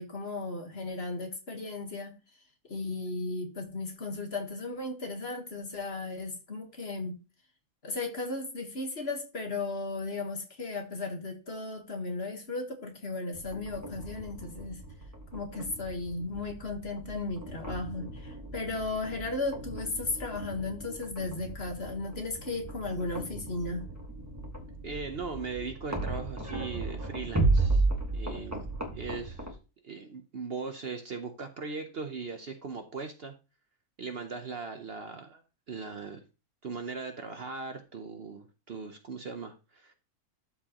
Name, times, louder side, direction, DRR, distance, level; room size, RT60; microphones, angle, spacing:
voice 1, 0.0-2.1 2.7-7.2 7.8-14.8 15.3-23.8, left 3 dB, 45° left, 4 dB, 1.6 m, -35 dB
sound 1, 13.3-29.5, right 2 dB, 10° right, 1.5 m, -34 dB
voice 2, 24.8-27.8 28.1-29.5 29.8-33.3 34.0-35.4 35.7-36.2 36.6-39.9, right 4 dB, 50° right, 6 dB, 0.9 m, -39 dB
12.5 x 4.7 x 2.9 m, 0.31 s
omnidirectional pair, 1.5 m